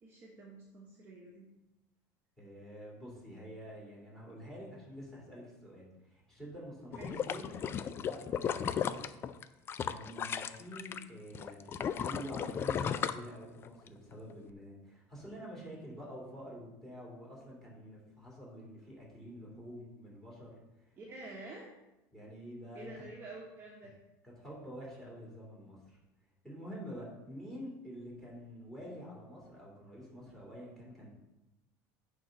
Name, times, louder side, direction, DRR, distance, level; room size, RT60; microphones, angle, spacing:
voice 1, 0.0-1.5 6.9-7.2 21.0-21.7 22.7-24.0, right 2 dB, 25° right, -3 dB, 1.3 m, -48 dB
voice 2, 2.4-9.0 9.8-20.6 22.1-23.1 24.2-26.0 26.4-31.1, equal, 5° left, -5 dB, 3.1 m, -48 dB
sound 1, 6.9-11.0 11.3-13.9 14.3-14.4, left 8 dB, 25° left, 0.3 m, -35 dB
9.0 x 3.9 x 5.4 m, 0.96 s
cardioid pair, 145°, 9 cm